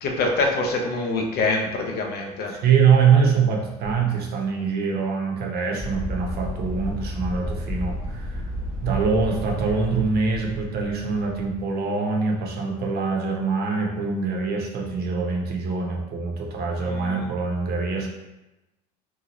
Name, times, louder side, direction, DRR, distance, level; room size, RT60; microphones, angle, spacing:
voice 1, 0.0-2.6 16.8-17.2, left 3 dB, 50° left, 2 dB, 0.6 m, -25 dB
voice 2, 2.5-8.4 8.8-18.1, right 5 dB, 50° right, 0 dB, 0.7 m, -24 dB
sound 1, 5.8-11.6, equal, 5° left, 0.8 m, -32 dB
2.8 x 2.4 x 2.9 m, 1.0 s
hypercardioid pair, 75°, 21 cm